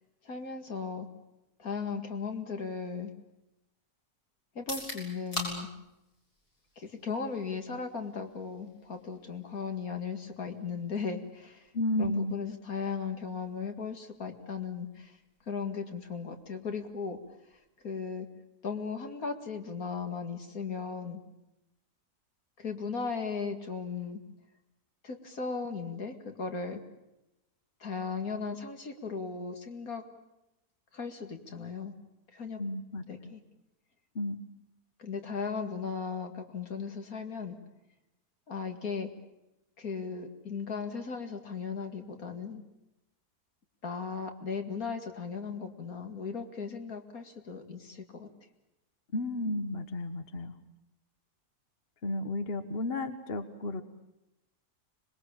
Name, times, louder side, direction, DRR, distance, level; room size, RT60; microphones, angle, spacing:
voice 1, 0.2-1.1 1.6-3.1 4.6-5.7 6.8-11.7 12.0-15.1 15.5-17.2 17.8-18.3 18.6-21.2 22.6-24.2 25.0-26.8 27.8-30.0 30.9-31.9 32.3-32.6 33.1-33.4 35.0-37.6 38.5-39.1 39.8-42.6 43.8-48.3, left 5 dB, 65° left, 6 dB, 2.6 m, -37 dB
sound 1, 4.5-18.4, left 1 dB, 80° left, 7.5 m, -48 dB
voice 2, 11.7-12.4 32.6-33.3 34.1-34.4 49.1-50.5 52.0-53.8, left 1 dB, 40° left, 10 dB, 1.3 m, -33 dB
26.5 x 21.0 x 8.8 m, 0.91 s
omnidirectional pair, 1.7 m